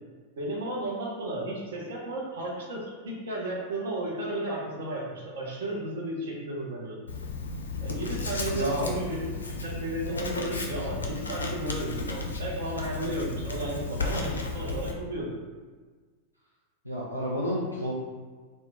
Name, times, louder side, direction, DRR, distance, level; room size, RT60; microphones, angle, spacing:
voice 1, 0.4-7.0 7.8-15.4, right 1 dB, 60° right, -3 dB, 0.7 m, -34 dB
Writing, 7.1-14.9, left 3 dB, 75° left, 0.4 m, -34 dB
voice 2, 8.5-8.9 16.8-17.9, equal, 90° right, -6 dB, 0.4 m, -29 dB
2.8 x 2.1 x 3.3 m, 1.4 s
figure-of-eight pair, 90°, 0 cm